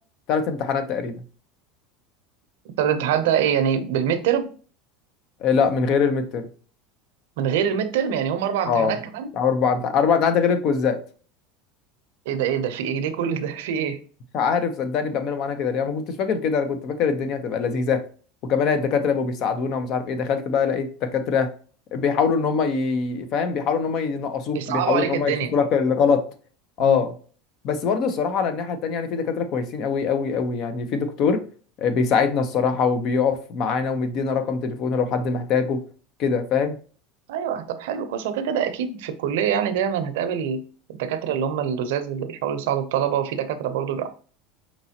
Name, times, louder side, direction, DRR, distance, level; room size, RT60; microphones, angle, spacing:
voice 1, 0.3-1.1 5.4-6.4 8.7-8.9 9.3-11.0 14.3-18.0 18.5-21.5 21.9-26.3 26.8-27.1 27.6-31.4 31.8-35.8 36.2-36.8, left 6 dB, 50° left, 9 dB, 0.7 m, -23 dB
voice 2, 2.8-4.5 7.4-9.3 12.3-14.0 24.5-25.5 26.8-27.0 37.3-40.6 41.0-44.1, right 8 dB, 80° right, 9 dB, 0.6 m, -25 dB
5.2 x 3.0 x 2.8 m, 0.41 s
supercardioid pair, 110°, 0 cm